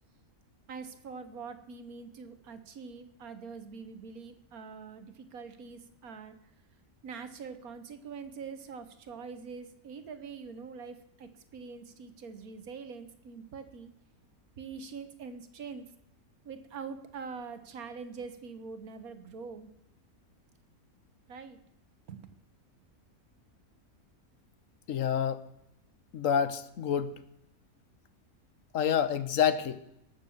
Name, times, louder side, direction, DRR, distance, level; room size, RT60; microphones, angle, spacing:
voice 1, 0.7-6.4 7.0-13.9 14.6-15.9 16.5-19.7 21.3-21.6 22.1-22.3, right 5 dB, 75° right, 10 dB, 1.6 m, -44 dB
voice 2, 24.9-25.4 26.1-27.1 28.7-29.8, left 8 dB, 65° left, 12 dB, 1.1 m, -28 dB
18.0 x 6.8 x 7.1 m, 0.80 s
omnidirectional pair, 1.6 m